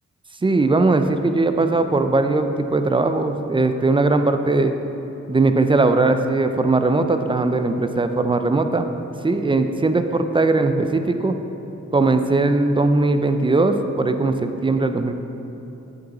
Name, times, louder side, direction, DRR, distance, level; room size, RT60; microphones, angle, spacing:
voice 1, 0.4-4.7 5.3-8.9 9.2-11.3 11.9-15.1, right 3 dB, 20° right, 8 dB, 0.3 m, -19 dB
7.6 x 5.2 x 4.0 m, 3.0 s
cardioid pair, 80°, 29 cm